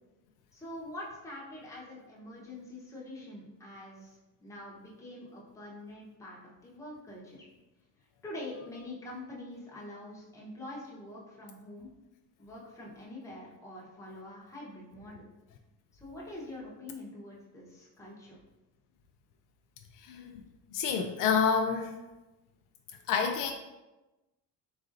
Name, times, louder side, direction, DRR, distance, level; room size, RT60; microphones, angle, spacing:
voice 1, 0.5-7.4 8.2-11.9 12.4-15.3 15.9-18.4, left 1 dB, 10° left, -5 dB, 0.9 m, -45 dB
voice 2, 20.0-20.4 20.7-21.9 23.1-23.5, left 6 dB, 65° left, 4 dB, 0.4 m, -28 dB
4.0 x 4.0 x 2.6 m, 1.1 s
cardioid pair, 160°, 34 cm